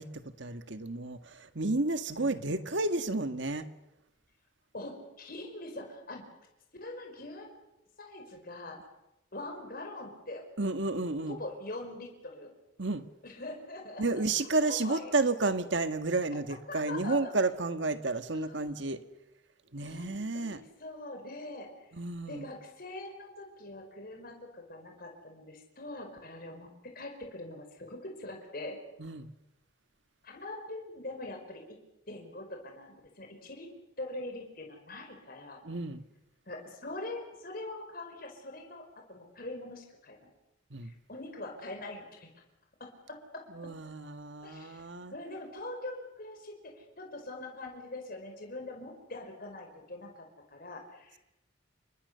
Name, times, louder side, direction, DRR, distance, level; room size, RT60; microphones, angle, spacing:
voice 1, 0.0-3.7 10.6-11.4 12.8-13.1 14.0-19.0 19.7-20.6 21.9-22.5 29.0-29.3 35.6-36.0 40.7-40.9 43.5-45.1, right 3 dB, 65° right, 9 dB, 1.7 m, -31 dB
voice 2, 2.2-2.7 4.7-6.2 6.8-7.5 8.0-8.8 9.3-10.4 11.3-12.5 13.2-14.2 14.6-15.3 16.7-17.3 18.3-19.0 19.8-21.9 22.3-28.8 30.2-31.8 32.1-33.7 34.0-35.6 36.5-40.3 40.8-42.4 42.8-43.4 44.4-51.2, left 2 dB, 45° left, 3 dB, 5.2 m, -43 dB
29.0 x 23.5 x 6.9 m, 0.93 s
head